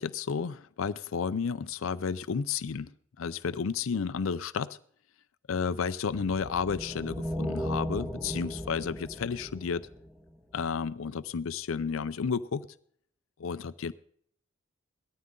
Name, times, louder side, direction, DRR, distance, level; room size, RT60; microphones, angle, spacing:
voice 1, 0.0-2.9 3.2-4.8 5.5-9.8 10.5-12.7 13.4-13.9, left 6 dB, 80° left, 14 dB, 0.5 m, -32 dB
sound 1, 6.1-10.5, equal, 15° right, 1.5 m, -36 dB
18.0 x 13.0 x 3.8 m, 0.63 s
head